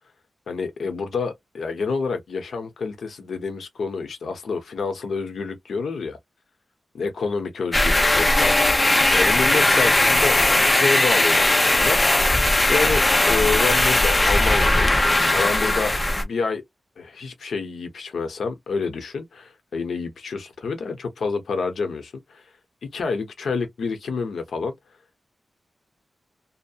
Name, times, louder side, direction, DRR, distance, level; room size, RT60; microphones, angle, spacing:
voice 1, 0.5-6.2 6.9-8.7 9.1-12.0 12.7-14.9 15.3-16.6 17.0-22.4 22.8-24.7, left 4 dB, 90° left, 0.9 m, -28 dB
sound 1, 7.7-16.2, left 1 dB, 20° left, 0.6 m, -18 dB
2.8 x 2.1 x 2.7 m
wide cardioid pair, 135°, 0 cm